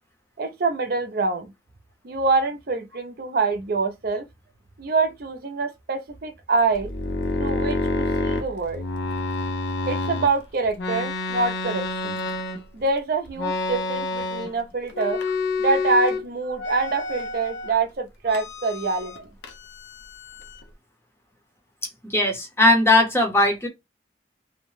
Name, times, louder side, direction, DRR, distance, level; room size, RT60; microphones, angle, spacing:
voice 1, 0.4-1.5 2.0-4.2 4.8-6.9 7.4-8.8 9.9-12.2 12.7-15.3 15.6-19.3, right 4 dB, 50° right, 0.5 m, -25 dB
sound 1, 6.7-10.3 10.8-12.9 13.4-14.6 14.9-16.2 16.6-17.8 18.3-19.2 19.4-20.6, left 3 dB, 70° left, 0.6 m, -28 dB
voice 2, 22.0-23.7, left 2 dB, 15° left, 0.6 m, -18 dB
2.7 x 2.1 x 3.1 m
head